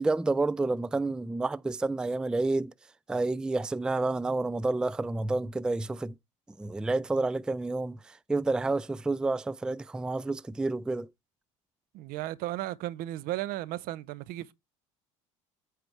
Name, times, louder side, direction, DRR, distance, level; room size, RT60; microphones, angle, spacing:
voice 1, 0.0-2.7 3.1-6.1 6.6-11.1, right 2 dB, 5° right, 0.3 m, -29 dB
voice 2, 11.9-14.5, right 15 dB, 65° right, 0.6 m, -35 dB
9.0 x 3.3 x 4.5 m
hypercardioid pair, 75°, 16 cm